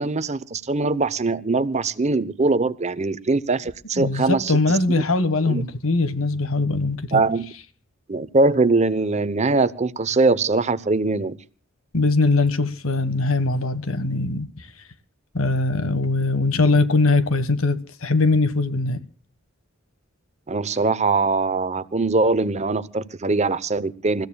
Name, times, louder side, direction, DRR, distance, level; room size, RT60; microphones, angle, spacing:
voice 1, 0.0-5.0 5.5-5.6 7.1-7.4 8.1-11.4 20.5-24.3, right 3 dB, 35° right, 0.8 m, -22 dB
voice 2, 3.9-7.2 11.9-14.7 15.3-19.0, left 3 dB, 90° left, 1.5 m, -21 dB
28.5 x 15.5 x 2.3 m
head